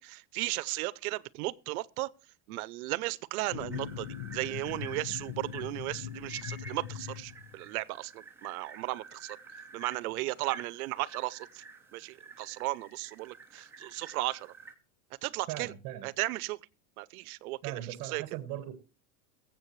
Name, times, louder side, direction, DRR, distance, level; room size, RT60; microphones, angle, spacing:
voice 1, 0.0-2.1 2.5-9.4 9.7-11.6 11.9-14.5 15.2-15.7 16.0-16.6 17.0-18.2, right 20 dB, 80° right, 0.7 m, -35 dB
sound 1, 3.5-7.8, left 10 dB, 85° left, 1.0 m, -41 dB
sound 2, 3.7-14.7, right 4 dB, 5° right, 0.8 m, -50 dB
voice 2, 15.5-16.1 17.6-18.8, right 12 dB, 40° right, 1.3 m, -39 dB
22.5 x 7.8 x 3.1 m
supercardioid pair, 165°, 43 cm